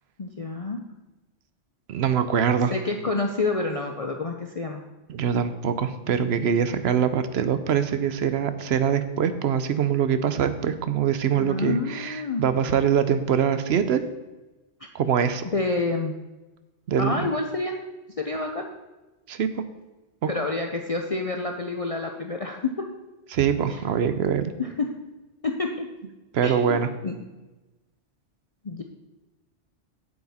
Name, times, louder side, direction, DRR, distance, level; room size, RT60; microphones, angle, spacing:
voice 1, 0.2-0.8 2.7-4.8 11.4-12.4 15.5-16.1 17.0-17.9 18.2-18.6 20.3-22.8 23.7-23.8 24.6-24.9 25.4-25.9 26.4-27.2 28.6-28.8, left 3 dB, 40° left, 2 dB, 0.5 m, -28 dB
voice 2, 1.9-2.7 5.1-14.0 14.9-15.4 16.9-17.3 19.3-19.6 20.2-20.3 23.3-24.5 26.3-26.9, right 8 dB, 65° right, 11 dB, 0.8 m, -23 dB
8.7 x 7.9 x 4.2 m, 1.1 s
omnidirectional pair, 1.2 m